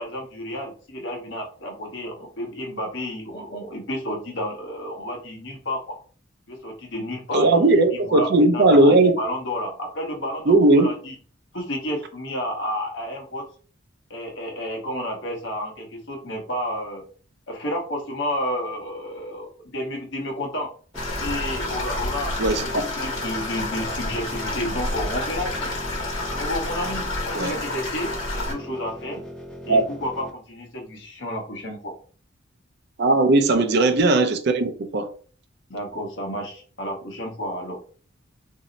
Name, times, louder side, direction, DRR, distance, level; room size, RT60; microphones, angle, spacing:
voice 1, 0.0-6.0 6.5-11.1 11.5-13.5 14.1-17.0 17.5-20.7 21.2-25.7 26.3-29.2 29.7-31.9 35.7-37.8, left 1 dB, 65° left, 0.9 m, -31 dB
voice 2, 7.3-9.2 10.5-10.9 22.4-22.8 27.4-27.5 29.7-29.8 33.0-35.1, right 2 dB, 55° right, 0.5 m, -18 dB
sound 1, 20.9-28.5, left 2 dB, 85° left, 1.1 m, -29 dB
sound 2, 20.9-30.3, left 1 dB, 5° left, 0.5 m, -39 dB
2.7 x 2.0 x 3.8 m
head